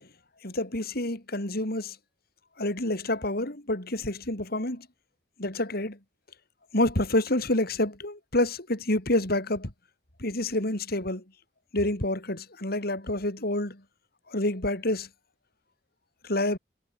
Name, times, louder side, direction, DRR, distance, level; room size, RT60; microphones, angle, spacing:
voice 1, 0.4-2.0 2.6-4.9 5.4-6.0 6.7-9.7 10.2-11.2 11.7-13.8 14.3-15.1 16.2-16.6, left 1 dB, 55° left, 5.2 m, -28 dB
head